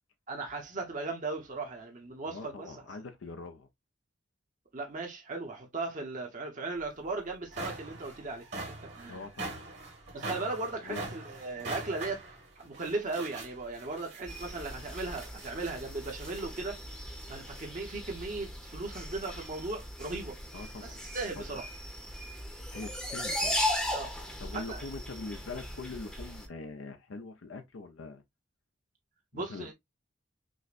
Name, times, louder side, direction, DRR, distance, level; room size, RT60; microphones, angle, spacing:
voice 1, 0.3-2.8 4.7-8.5 8.9-9.3 10.1-12.2 12.6-16.8 17.3-20.4 20.8-21.7 23.9-24.1 24.5-24.8 29.3-29.7, right 3 dB, 40° right, 0.9 m, -37 dB
voice 2, 2.3-3.7 9.1-9.6 10.8-11.0 20.5-21.0 21.4-21.6 22.7-23.6 24.4-28.2 29.3-29.7, left 3 dB, 85° left, 0.6 m, -43 dB
sound 1, 6.8-6.9 7.3-16.5, right 2 dB, 60° right, 1.7 m, -43 dB
sound 2, 14.3-26.5, left 1 dB, 5° left, 0.7 m, -38 dB
6.2 x 2.1 x 2.4 m
head